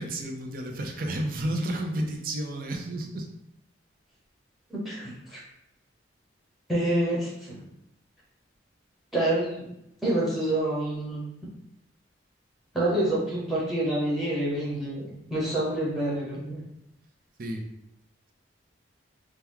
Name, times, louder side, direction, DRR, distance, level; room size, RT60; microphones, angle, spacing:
voice 1, 0.0-3.3 17.4-17.7, right 1 dB, 50° right, 3 dB, 0.4 m, -31 dB
voice 2, 4.8-5.4 6.7-7.6 9.1-9.7 10.0-11.2 12.7-16.6, right 1 dB, ahead, -5 dB, 0.9 m, -27 dB
2.9 x 2.2 x 3.5 m, 0.83 s
head